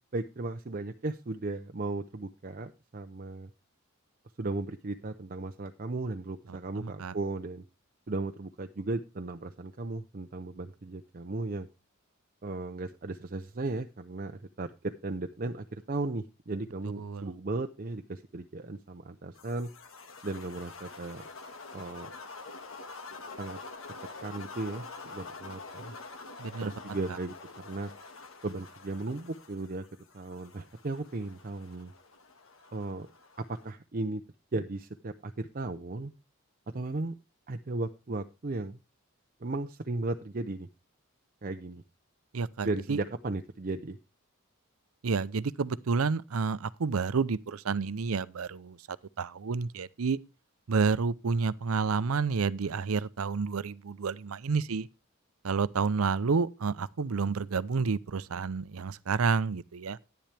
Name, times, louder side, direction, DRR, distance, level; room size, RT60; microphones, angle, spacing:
voice 1, 0.1-3.5 4.4-7.6 8.1-11.7 12.4-19.7 20.2-21.3 21.7-22.1 23.4-23.6 24.2-25.9 26.6-27.9 28.4-29.8 30.1-31.9 32.7-33.1 33.4-34.2 34.5-36.1 36.7-37.1 37.5-38.8 39.4-40.7 41.4-41.8 42.6-44.0, right 2 dB, 40° right, 0.6 m, -36 dB
voice 2, 6.7-7.1 17.0-17.3 26.4-26.7 42.3-43.0 45.0-50.2 50.7-54.9 55.4-60.0, right 5 dB, 85° right, 0.6 m, -30 dB
sound 1, 19.4-33.7, left 3 dB, 70° left, 1.8 m, -47 dB
10.5 x 10.5 x 3.3 m
head